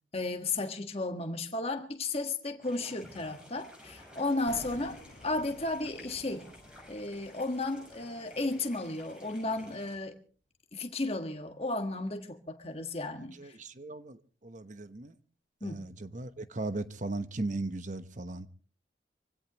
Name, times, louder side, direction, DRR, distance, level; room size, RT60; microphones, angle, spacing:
voice 1, 0.1-6.5 6.9-10.2 10.7-13.6 15.6-15.8, left 2 dB, 30° left, 1.5 m, -34 dB
sound 1, 2.6-10.0, left 1 dB, 5° right, 6.2 m, -53 dB
sound 2, 4.5-9.5 9.7-9.9, left 1 dB, 70° left, 2.0 m, -53 dB
voice 2, 13.3-15.2 15.6-18.5, right 2 dB, 40° right, 1.0 m, -37 dB
25.0 x 16.5 x 3.0 m
head